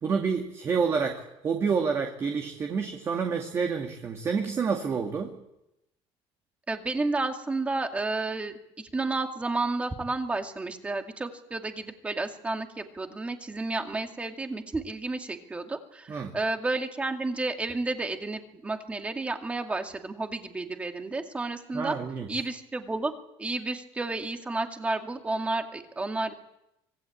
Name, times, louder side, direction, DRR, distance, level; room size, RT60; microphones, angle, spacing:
voice 1, 0.0-5.3 16.1-16.3 21.7-22.3, right 5 dB, 30° right, 2 dB, 2.3 m, -28 dB
voice 2, 6.7-22.0 22.3-23.1 23.4-26.3, right 3 dB, 15° right, 5 dB, 2.3 m, -31 dB
25.5 x 19.5 x 8.7 m, 0.88 s
cardioid pair, 155°, 9 cm